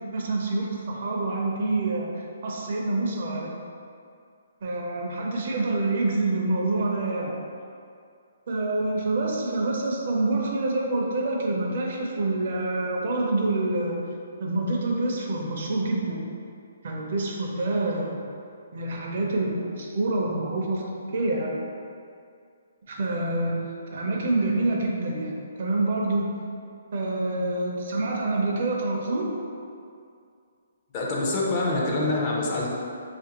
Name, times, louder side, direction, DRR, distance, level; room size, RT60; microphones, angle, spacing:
voice 1, 0.1-3.5 4.6-7.4 8.5-14.0 14.4-16.2 16.8-18.2 18.7-21.6 22.9-23.6 23.9-26.3 26.9-29.3, right 2 dB, 55° right, -1 dB, 0.5 m, -27 dB
voice 2, 30.9-32.7, left 2 dB, 30° left, -4 dB, 0.5 m, -25 dB
3.0 x 2.5 x 2.8 m, 2.4 s
hypercardioid pair, 160°, 0 cm